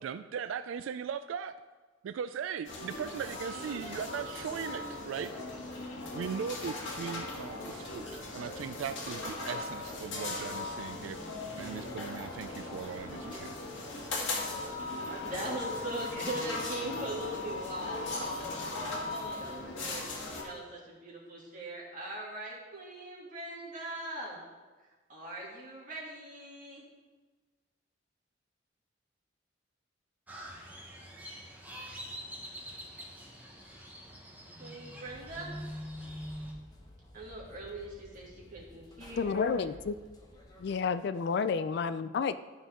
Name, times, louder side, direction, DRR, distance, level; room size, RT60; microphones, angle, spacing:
voice 1, 0.0-1.5 2.0-5.3 6.1-11.2 11.6-13.5, right 7 dB, 85° right, 12 dB, 0.3 m, -38 dB
sound 1, 2.7-20.4, left 2 dB, 70° left, 1.8 m, -38 dB
voice 2, 15.2-24.4 24.8-26.8 34.6-35.5 37.1-39.7, right 1 dB, 40° right, -5 dB, 2.4 m, -41 dB
Crow, 30.3-36.5, equal, 10° right, 1.1 m, -44 dB
sound 2, 35.0-40.7, left 1 dB, 20° left, 1.0 m, -54 dB
voice 3, 39.2-40.0 40.6-42.4, left 5 dB, 55° left, 13 dB, 0.3 m, -30 dB
12.5 x 5.3 x 3.7 m, 1.3 s
head